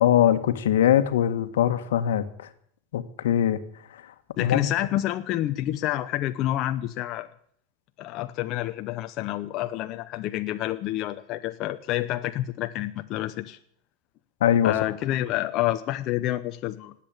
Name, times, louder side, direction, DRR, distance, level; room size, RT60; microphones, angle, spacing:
voice 1, 0.0-2.5 2.9-3.6 3.9-4.0 4.4-4.7 14.4-14.7, left 10 dB, 90° left, 1.5 m, -22 dB
voice 2, 4.4-7.3 8.0-13.6 14.6-16.9, left 14 dB, 45° left, 0.8 m, -28 dB
19.0 x 8.5 x 8.8 m
supercardioid pair, 130°, 0 cm